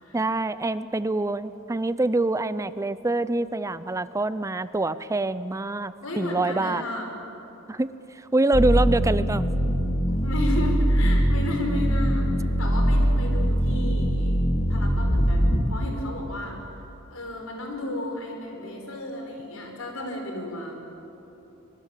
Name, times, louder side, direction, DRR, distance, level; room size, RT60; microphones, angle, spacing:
voice 1, 0.1-6.9 7.7-9.5, right 2 dB, 15° right, 15 dB, 0.5 m, -25 dB
voice 2, 6.0-7.1 10.1-14.4 14.7-16.6 17.1-20.8, left 1 dB, 85° left, 2 dB, 5.1 m, -33 dB
sound 1, 8.5-15.7, equal, 30° left, 2.5 m, -22 dB
24.5 x 22.5 x 7.4 m, 3.0 s
head